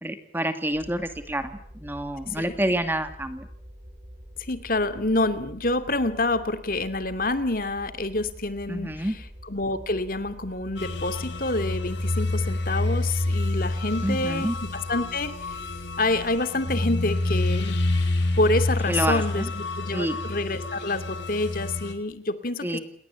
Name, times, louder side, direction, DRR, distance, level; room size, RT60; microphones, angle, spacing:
voice 1, 0.0-3.5 8.7-9.2 14.0-14.6 18.9-19.5 19.9-20.2 22.6-22.8, right 1 dB, 10° right, 8 dB, 2.3 m, -28 dB
sound 1, 0.7-16.4, equal, 40° right, 4.9 m, -46 dB
voice 2, 4.4-9.2 9.4-15.6 16.0-17.8 18.4-22.8, left 2 dB, 50° left, 11 dB, 2.5 m, -27 dB
sound 2, 10.8-21.9, left 2 dB, 80° left, 4.2 m, -28 dB
29.0 x 20.5 x 8.4 m, 0.63 s
head